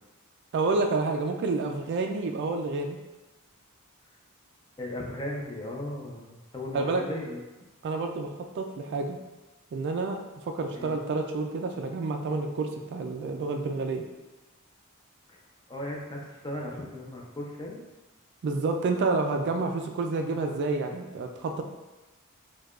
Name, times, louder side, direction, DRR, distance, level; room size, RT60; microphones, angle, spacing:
voice 1, 0.5-3.0 6.7-7.0 7.8-8.3 8.5-9.2 9.7-10.2 10.4-14.0 18.4-21.6, right 3 dB, 50° right, 4 dB, 0.3 m, -29 dB
voice 2, 4.8-7.4 10.7-11.0 15.3-15.4 15.7-17.8, left 1 dB, 20° left, -2 dB, 0.5 m, -36 dB
4.6 x 2.3 x 2.3 m, 1.1 s
head